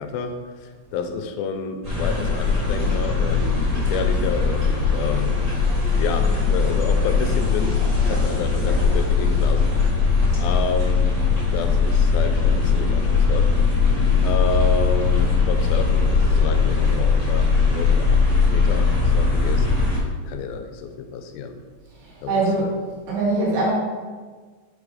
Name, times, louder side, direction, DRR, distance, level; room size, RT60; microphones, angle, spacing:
voice 1, 0.0-5.4 6.0-9.7 10.4-11.2 11.5-13.5 14.2-19.7 20.2-21.6 22.2-22.7, left 5 dB, 85° left, 7 dB, 2.4 m, -30 dB
sound 1, 1.8-20.0, left 4 dB, 25° right, 1.8 m, -20 dB
voice 2, 22.3-22.7 23.1-23.7, right 2 dB, 70° right, -5 dB, 3.5 m, -21 dB
6.0 x 4.8 x 4.9 m, 1.5 s
omnidirectional pair, 4.2 m